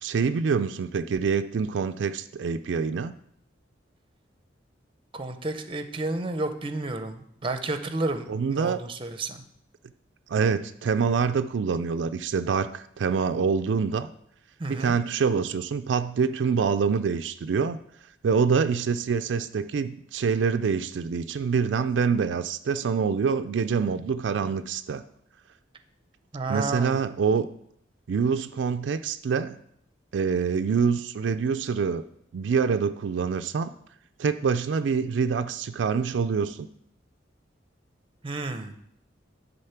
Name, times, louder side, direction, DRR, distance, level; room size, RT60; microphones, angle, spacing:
voice 1, 0.0-3.1 8.3-8.8 10.3-14.1 14.7-17.8 18.2-25.0 26.5-27.5 28.1-29.6 30.1-32.0 32.3-33.7 34.2-36.7, right 5 dB, 75° right, 8 dB, 0.4 m, -25 dB
voice 2, 5.1-9.4 14.6-15.0 26.3-27.0 38.2-38.7, right 2 dB, 30° right, 8 dB, 0.6 m, -31 dB
9.9 x 4.0 x 5.7 m, 0.70 s
head